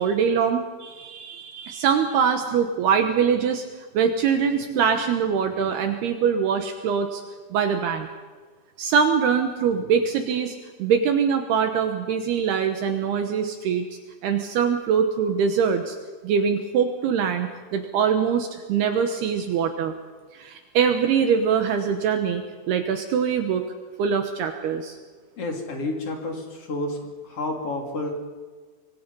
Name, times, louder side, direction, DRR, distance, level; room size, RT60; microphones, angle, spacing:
voice 1, 0.0-3.6 3.9-7.2 7.5-8.1 8.8-13.9 14.2-16.0 16.2-19.9 20.3-23.7 24.0-25.0, right 7 dB, 70° right, 6 dB, 2.7 m, -23 dB
voice 2, 25.4-27.0 27.2-28.2, left 2 dB, 35° left, 2 dB, 3.2 m, -30 dB
25.5 x 23.0 x 5.4 m, 1.4 s
omnidirectional pair, 5.5 m